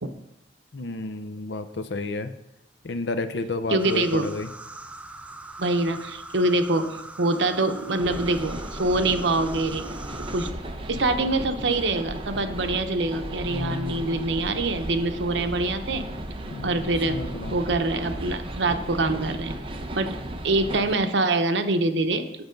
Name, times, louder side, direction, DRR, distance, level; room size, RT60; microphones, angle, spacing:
voice 1, 0.7-2.3 2.8-4.5 13.5-14.2 16.5-17.6, left 3 dB, 75° left, 10 dB, 0.7 m, -31 dB
voice 2, 3.7-4.3 5.6-9.9 10.3-10.5 10.9-16.1 16.6-17.2 17.5-19.6 20.0-20.2 20.4-22.3, right 2 dB, 85° right, 8 dB, 0.8 m, -25 dB
sound 1, 3.8-10.5, right 2 dB, 5° right, 0.4 m, -41 dB
sound 2, 8.0-21.0, right 1 dB, 30° right, 0.8 m, -35 dB
8.0 x 6.9 x 5.2 m, 0.87 s
head